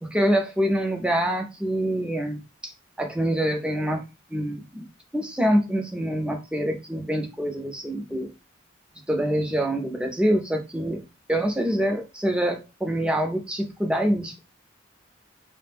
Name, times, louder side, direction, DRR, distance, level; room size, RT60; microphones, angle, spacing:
voice 1, 0.0-2.7 3.0-4.0 4.3-4.9 5.1-8.3 9.1-11.0 11.3-14.4, equal, 5° right, 3 dB, 0.4 m, -25 dB
2.5 x 2.0 x 3.3 m, 0.27 s
head